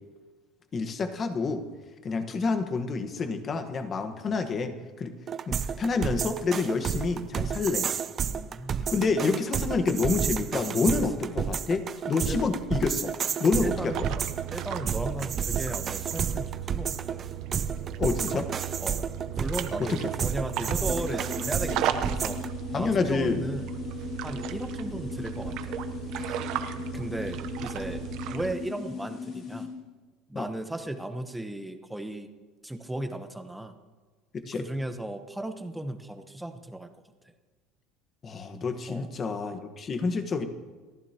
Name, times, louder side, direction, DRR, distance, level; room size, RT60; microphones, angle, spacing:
voice 1, 0.7-1.6 2.0-4.7 5.0-5.1 5.5-7.9 8.9-11.8 12.1-13.1 13.4-13.9 18.0-18.4 19.9-20.0 22.7-23.4 26.2-26.4 30.3-30.5 34.3-34.6 38.2-40.4, left 4 dB, 25° left, 7 dB, 1.3 m, -28 dB
sound 1, 5.3-22.5, right 7 dB, 30° right, 0.5 m, -31 dB
voice 2, 8.2-8.9 10.9-11.3 12.3-12.4 13.6-14.2 14.5-17.2 18.3-18.4 18.8-19.0 19.4-22.4 22.7-23.7 24.2-25.8 26.6-26.7 26.9-28.0 28.3-29.7 30.3-32.3 32.6-33.7 34.4-36.9 38.9-39.1, right 1 dB, 5° right, 7 dB, 1.0 m, -36 dB
sound 2, 13.5-28.5, right 11 dB, 50° right, 0.8 m, -36 dB
sound 3, 20.8-29.7, left 6 dB, 45° left, 4.6 m, -38 dB
29.5 x 14.5 x 2.9 m, 1.3 s
cardioid pair, 155°, 0 cm